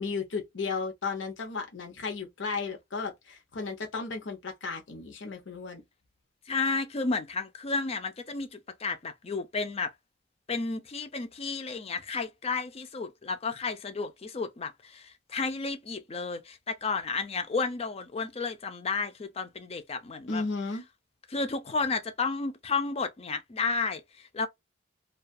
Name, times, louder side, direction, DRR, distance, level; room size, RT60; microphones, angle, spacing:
voice 1, 0.0-5.8 20.3-20.8, left 4 dB, 75° left, 0.7 m, -34 dB
voice 2, 6.5-9.9 10.5-20.4 21.3-24.5, left 4 dB, 35° left, 0.5 m, -32 dB
2.3 x 2.3 x 2.5 m
head